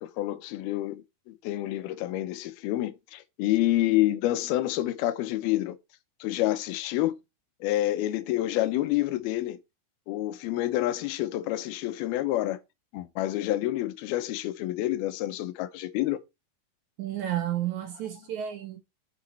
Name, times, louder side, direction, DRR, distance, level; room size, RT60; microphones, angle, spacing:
voice 1, 0.0-5.8 6.2-7.1 7.6-9.6 10.1-12.6 12.9-16.2, left 15 dB, 90° left, 2.7 m, -28 dB
voice 2, 17.0-18.8, right 11 dB, 65° right, 2.0 m, -31 dB
8.1 x 6.6 x 4.3 m
omnidirectional pair, 4.4 m